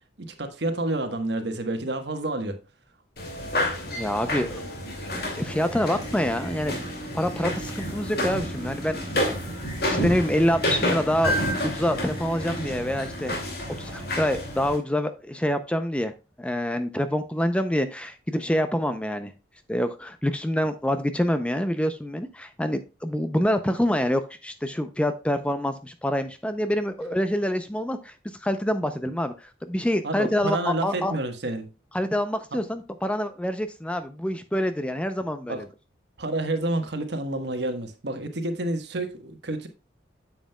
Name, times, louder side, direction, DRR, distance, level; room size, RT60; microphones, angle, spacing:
voice 1, 0.2-2.6 30.0-31.7 35.4-35.6 36.2-39.7, right 2 dB, 65° right, 1.2 m, -29 dB
sound 1, 3.2-14.8, left 1 dB, 55° left, 2.3 m, -30 dB
voice 2, 3.9-4.6 5.1-6.8 7.1-9.5 9.9-11.4 11.6-13.4 13.8-16.1 16.4-19.3 19.7-28.1 28.4-31.1 31.9-35.7, equal, 5° left, 0.5 m, -26 dB
sound 2, 5.5-12.7, right 2 dB, 35° left, 2.6 m, -40 dB
8.9 x 7.3 x 2.2 m
head